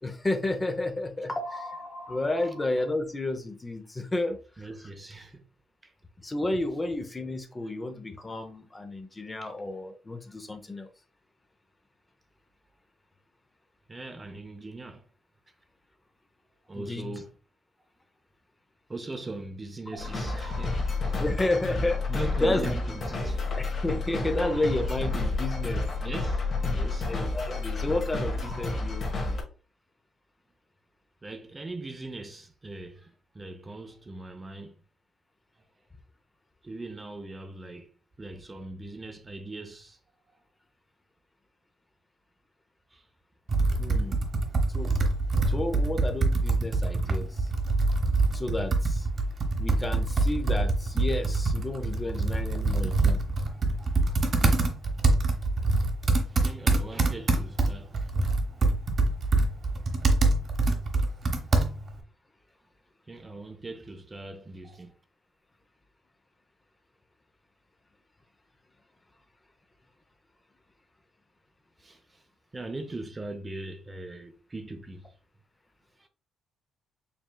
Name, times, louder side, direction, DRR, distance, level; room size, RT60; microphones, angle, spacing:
voice 1, 0.0-4.4 6.2-10.9 16.7-17.1 19.9-20.0 20.3-20.4 21.2-22.0 22.4-22.6 23.6-25.8 27.1-29.4 43.8-44.1 44.7-45.0 45.5-47.5 48.3-49.1 49.6-53.2, left 2 dB, 20° left, 0.6 m, -31 dB
voice 2, 4.6-5.4 5.8-5.9 9.4-9.5 13.9-15.1 16.7-17.3 18.9-21.2 22.1-23.4 26.0-26.4 26.7-27.1 31.2-34.8 36.6-37.9 38.2-40.0 42.9-43.1 53.5-54.7 55.2-55.4 56.3-58.3 63.1-64.9 71.8-72.2 72.5-75.1 76.0-76.1, right 2 dB, 25° right, 0.6 m, -40 dB
sound 1, 20.0-29.4, left 3 dB, 45° left, 1.4 m, -30 dB
Computer keyboard, 43.5-62.0, right 2 dB, 45° right, 0.9 m, -25 dB
5.2 x 3.1 x 2.2 m
cardioid pair, 90°, 0 cm